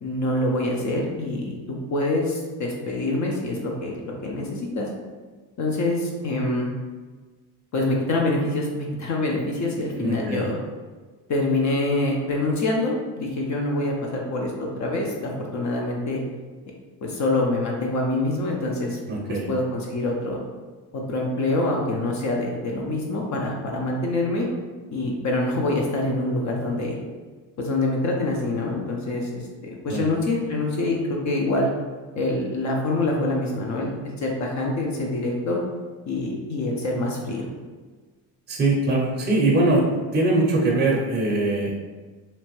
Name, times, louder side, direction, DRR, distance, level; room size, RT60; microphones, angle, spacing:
voice 1, 0.0-4.9 5.6-6.7 7.7-10.6 11.3-16.2 17.0-19.0 19.3-20.4 20.9-24.5 24.9-27.0 27.6-31.7 32.2-35.6 36.1-37.5, left 2 dB, 40° left, -1 dB, 0.6 m, -25 dB
voice 2, 10.0-10.5 19.1-19.5 29.9-30.0 38.5-41.8, right 2 dB, 25° right, -3 dB, 0.6 m, -22 dB
2.8 x 2.1 x 3.0 m, 1.4 s
supercardioid pair, 90°, 43 cm